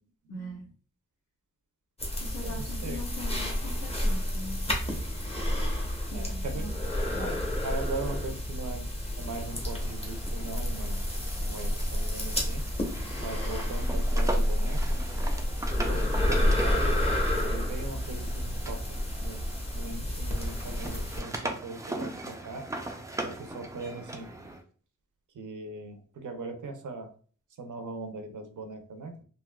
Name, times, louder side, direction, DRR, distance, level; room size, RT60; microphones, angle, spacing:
voice 1, 0.3-0.6 2.2-4.6 6.1-6.7 7.1-7.3, left 1 dB, 55° left, -6 dB, 1.1 m, -41 dB
sound 1, 2.0-21.2, left 1 dB, 20° left, 0.8 m, -29 dB
voice 2, 2.4-3.0 6.1-6.7 7.2-7.4 7.6-8.9 9.2-11.0 11.4-12.6 13.2-15.0 15.8-17.1 17.4-19.5 19.7-22.6 23.2-24.3 25.3-27.1 27.6-29.2, right 3 dB, 75° right, 5 dB, 0.7 m, -40 dB
sound 2, 9.4-20.0 20.3-24.6, right 1 dB, 10° right, 0.3 m, -40 dB
3.5 x 2.7 x 2.2 m, 0.43 s
wide cardioid pair, 140°, 31 cm